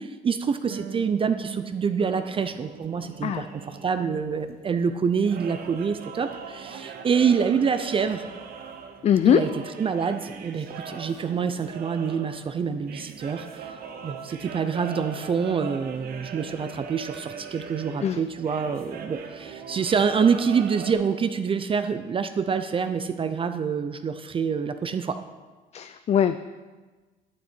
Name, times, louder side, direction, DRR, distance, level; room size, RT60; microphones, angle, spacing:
voice 1, 0.0-8.3 9.2-9.5 9.8-25.2, right 6 dB, 30° right, 9 dB, 0.5 m, -26 dB
Harp, 0.7-4.1 4.4-5.5, right 8 dB, 85° right, 1.4 m, -43 dB
sound 1, 2.0-20.9, right 6 dB, 65° right, 1.0 m, -41 dB
voice 2, 9.0-9.4 18.0-18.2 25.7-26.4, left 9 dB, 40° left, 10 dB, 0.4 m, -21 dB
11.5 x 8.4 x 4.4 m, 1.3 s
cardioid pair, 110°, 17 cm